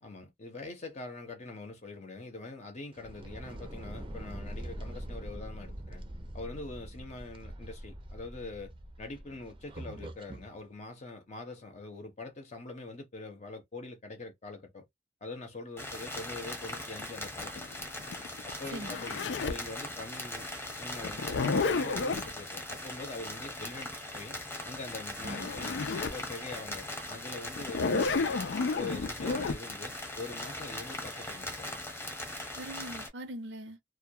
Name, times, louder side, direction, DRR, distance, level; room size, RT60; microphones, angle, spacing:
voice 1, 0.0-6.0 6.3-14.8 15.2-17.9 18.4-20.5 20.8-21.4 21.7-24.4 24.6-28.4 28.7-31.8, left 3 dB, 40° left, 0.7 m, -44 dB
sound 1, 2.9-10.5, right 1 dB, 30° right, 0.5 m, -43 dB
sound 2, 15.8-33.1, left 1 dB, 15° left, 0.9 m, -40 dB
Zipper (clothing), 17.0-19.7 21.0-22.3 24.9-25.0 25.2-26.2 26.7-26.8 27.6-29.6, left 4 dB, 85° left, 0.4 m, -31 dB
voice 2, 18.7-19.0 25.2-25.5 27.9-28.1 32.6-33.8, right 1 dB, 80° right, 0.7 m, -42 dB
2.2 x 2.1 x 2.6 m
head